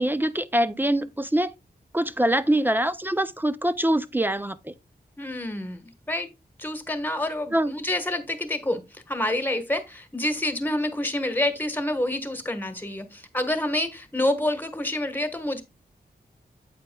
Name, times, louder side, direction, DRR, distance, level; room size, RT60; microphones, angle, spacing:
voice 1, 0.0-1.5 1.9-4.7 7.5-7.7, right 1 dB, 10° right, 0.4 m, -24 dB
voice 2, 5.2-6.3 6.6-15.6, left 1 dB, 10° left, 1.3 m, -28 dB
8.6 x 8.3 x 2.2 m
wide cardioid pair, 150°, 17 cm